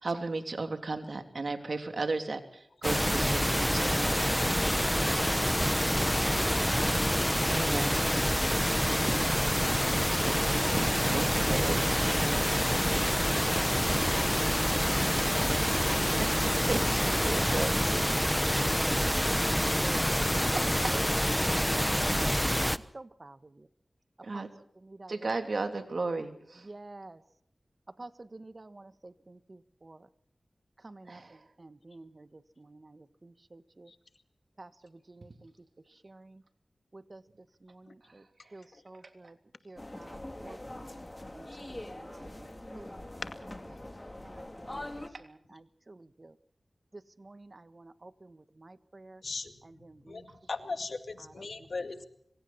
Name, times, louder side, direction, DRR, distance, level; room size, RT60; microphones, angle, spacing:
voice 1, 0.0-2.4 2.8-4.0 7.5-8.0 10.8-12.4 16.1-16.3 16.7-17.7 20.5-20.9 24.2-24.5 25.1-26.6 31.1-31.3, right 3 dB, 70° right, 6 dB, 3.2 m, -34 dB
sound 1, 2.8-22.8, equal, 5° left, 1.1 m, -27 dB
voice 2, 16.8-20.0 20.3-21.0 21.6-22.3 22.9-23.4 24.3-24.5 24.8-25.1 26.6-27.2 28.0-30.0 30.8-31.2 31.6-32.3 32.6-33.9 34.6-34.7 35.1-35.5 36.0-36.4 36.9-37.2 37.6-38.2 38.5-39.3 39.6-40.9 41.3-43.1 44.2-44.7 45.2-46.3 47.2-49.2 49.6-50.2 51.2-51.5, right 2 dB, 45° right, 12 dB, 1.5 m, -50 dB
sound 2, 39.8-45.1, left 1 dB, 25° left, 3.3 m, -43 dB
voice 3, 50.5-52.0, left 3 dB, 75° left, 8 dB, 2.2 m, -37 dB
26.5 x 25.0 x 4.3 m, 0.71 s
wide cardioid pair, 55°, 0 cm